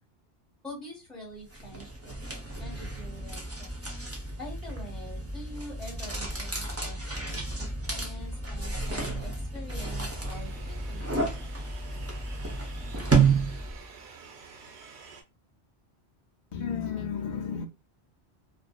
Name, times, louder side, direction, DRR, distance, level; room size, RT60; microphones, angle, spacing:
voice 1, 0.6-3.9 4.4-11.5, equal, ahead, 1.2 m, -45 dB
sound 1, 1.5-13.9, right 4 dB, 20° right, 0.4 m, -31 dB
sound 2, 9.8-15.2, right 5 dB, 90° right, 0.9 m, -49 dB
voice 2, 16.5-17.7, left 7 dB, 55° left, 0.5 m, -32 dB
2.5 x 2.4 x 2.2 m
omnidirectional pair, 1.1 m